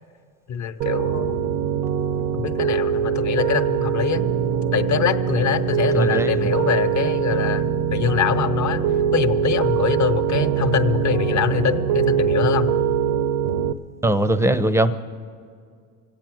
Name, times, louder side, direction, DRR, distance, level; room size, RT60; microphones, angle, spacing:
voice 1, 0.5-1.5 2.3-4.2 4.7-8.8 9.1-12.7, left 7 dB, 40° left, 9 dB, 0.9 m, -23 dB
Piano, 0.8-13.7, right 8 dB, 70° right, 0.8 m, -23 dB
voice 2, 5.9-6.5 14.0-14.9, right 1 dB, 5° right, 13 dB, 0.6 m, -20 dB
25.0 x 8.8 x 6.1 m, 2.2 s
supercardioid pair, 95°, 43 cm